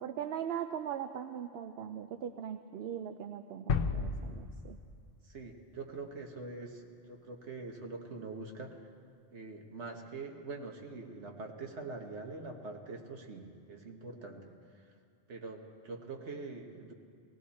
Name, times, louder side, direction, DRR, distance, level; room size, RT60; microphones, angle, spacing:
voice 1, 0.0-4.8, right 9 dB, 65° right, 7 dB, 0.8 m, -40 dB
sound 1, 3.7-5.6, left 5 dB, 60° left, 0.8 m, -34 dB
voice 2, 5.3-8.8 9.3-14.5 15.3-16.9, right 3 dB, 85° right, 2 dB, 1.6 m, -44 dB
18.5 x 17.5 x 4.2 m, 2.3 s
omnidirectional pair, 1.1 m